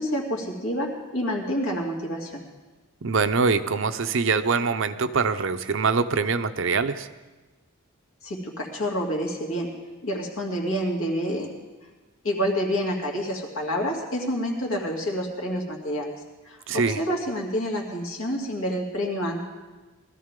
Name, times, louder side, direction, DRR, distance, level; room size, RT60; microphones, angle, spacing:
voice 1, 0.0-2.4 8.2-9.7 10.0-11.5 12.2-16.2 16.5-19.4, equal, 75° left, 0 dB, 2.7 m, -28 dB
voice 2, 3.0-7.1 16.7-17.0, right 4 dB, 60° right, 11 dB, 0.6 m, -24 dB
20.0 x 13.5 x 3.7 m, 1.2 s
head